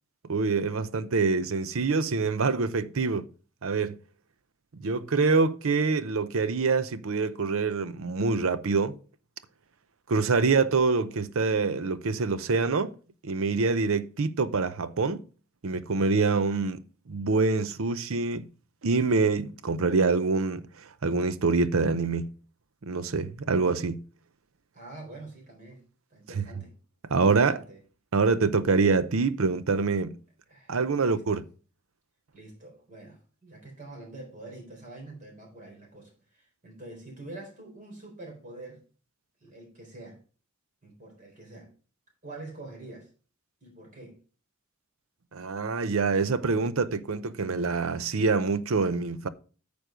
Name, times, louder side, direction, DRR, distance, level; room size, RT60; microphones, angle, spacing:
voice 1, 0.3-3.3 3.6-4.0 4.8-8.9 10.1-12.9 13.2-15.2 15.6-16.8 17.1-18.5 18.8-20.6 21.0-22.3 22.8-24.0 26.4-26.5 27.1-27.6 28.1-30.1 30.7-31.4 45.3-49.3, right 4 dB, 80° right, 0.7 m, -25 dB
voice 2, 24.7-25.8 26.1-26.7 27.2-27.8 30.5-31.4 32.3-38.8 39.4-40.2 40.8-41.7 42.2-43.1 43.6-44.2, right 2 dB, 40° right, 4.0 m, -46 dB
9.1 x 5.3 x 5.0 m
head